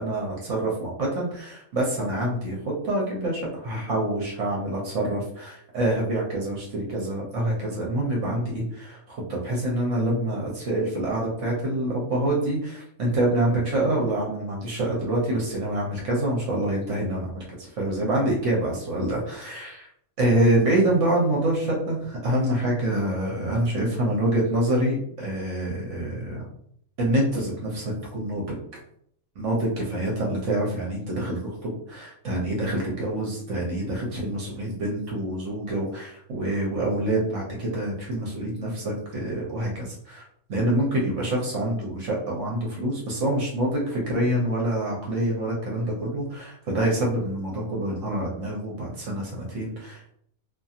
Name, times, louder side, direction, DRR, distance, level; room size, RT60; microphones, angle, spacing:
voice 1, 0.0-19.9 20.2-26.5 27.0-28.6 29.4-40.2 40.5-50.1, right 1 dB, 60° right, -3 dB, 0.9 m, -26 dB
2.7 x 2.6 x 2.4 m, 0.67 s
omnidirectional pair, 1.6 m